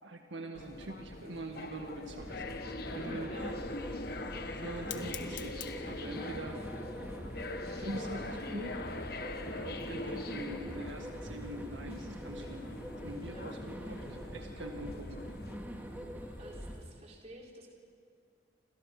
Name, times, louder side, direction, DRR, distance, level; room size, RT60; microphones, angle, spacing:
voice 1, 0.0-2.5 2.9-3.3 4.5-6.6 7.7-8.8 9.6-12.7 13.0-15.2, right 1 dB, 85° right, 3 dB, 2.0 m, -43 dB
sound 1, 0.5-15.6, left 2 dB, 55° left, 1.5 m, -43 dB
Fire, 1.2-16.9, left 8 dB, 90° left, 1.6 m, -55 dB
sound 2, 2.2-16.8, equal, 10° right, 2.6 m, -44 dB
voice 2, 16.4-17.7, right 1 dB, 35° right, -1 dB, 4.3 m, -51 dB
29.5 x 26.5 x 6.1 m, 2.2 s
head